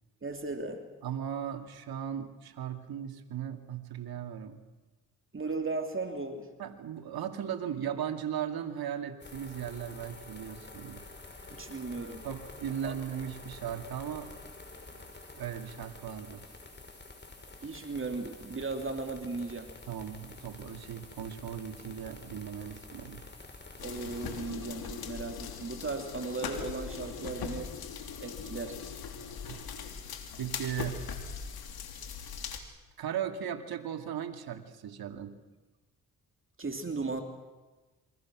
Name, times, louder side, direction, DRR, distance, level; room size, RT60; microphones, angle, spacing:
voice 1, 0.2-0.8 5.3-6.5 11.5-12.2 12.8-12.9 17.6-19.7 23.8-27.7 28.2-28.8 36.6-37.2, right 3 dB, 35° right, 4 dB, 2.9 m, -36 dB
voice 2, 1.0-4.6 6.6-11.1 12.2-14.3 14.9-15.0 15.3-16.4 19.9-23.2 29.3-29.6 30.4-31.1 33.0-35.4, right 9 dB, 70° right, 6 dB, 2.6 m, -37 dB
sound 1, 9.2-24.4, left 2 dB, 30° left, 6.0 m, -49 dB
sound 2, 23.8-32.6, left 6 dB, 75° left, 3.2 m, -40 dB
28.5 x 23.5 x 6.3 m, 1.2 s
cardioid pair, 65°, 37 cm